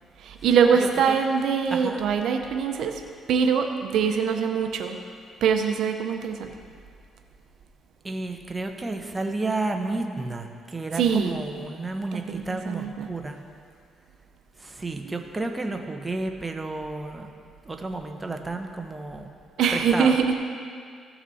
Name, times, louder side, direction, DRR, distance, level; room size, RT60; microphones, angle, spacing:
voice 1, 0.2-3.0 3.3-5.0 5.4-6.5 11.0-11.3 12.3-13.1 19.6-20.3, right 6 dB, 75° right, 4 dB, 0.7 m, -23 dB
voice 2, 0.8-1.2 1.7-2.0 8.0-13.4 14.6-17.3 17.6-19.3 19.7-20.3, right 2 dB, 20° right, 4 dB, 0.9 m, -31 dB
15.5 x 5.9 x 4.1 m, 2.1 s
cardioid pair, 90°, 0 cm